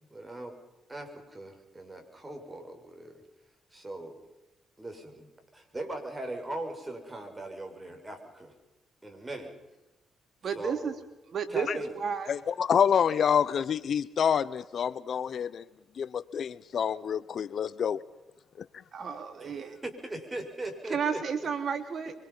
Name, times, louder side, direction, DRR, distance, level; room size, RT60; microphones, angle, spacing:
voice 1, 0.1-0.6 0.9-3.2 3.7-4.2 4.8-5.3 5.5-8.5 9.0-9.5 10.4-10.9 11.5-12.0 19.4-21.2, right 2 dB, 15° right, 6.2 m, -40 dB
voice 2, 10.4-10.9 11.3-12.3 18.9-19.8 20.9-22.1, right 6 dB, 55° right, 3.1 m, -32 dB
voice 3, 12.3-15.6 16.0-18.0, left 8 dB, 55° left, 0.9 m, -27 dB
25.5 x 25.0 x 5.7 m
cardioid pair, 90°, 0 cm